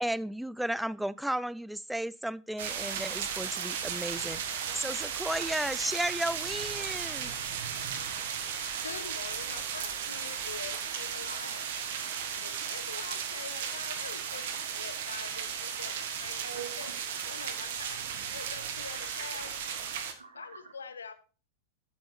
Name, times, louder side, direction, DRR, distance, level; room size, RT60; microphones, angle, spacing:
voice 1, 0.0-7.3, right 1 dB, ahead, 0.3 m, -34 dB
sound 1, 2.6-20.1, right 7 dB, 55° right, 1.2 m, -35 dB
voice 2, 7.7-8.9 16.4-17.0 20.1-20.7, right 7 dB, 75° right, 1.4 m, -47 dB
voice 3, 8.8-11.7 12.3-16.9 17.2-19.5 20.3-21.1, left 6 dB, 70° left, 1.0 m, -45 dB
7.8 x 6.9 x 4.2 m
figure-of-eight pair, 90°, 0 cm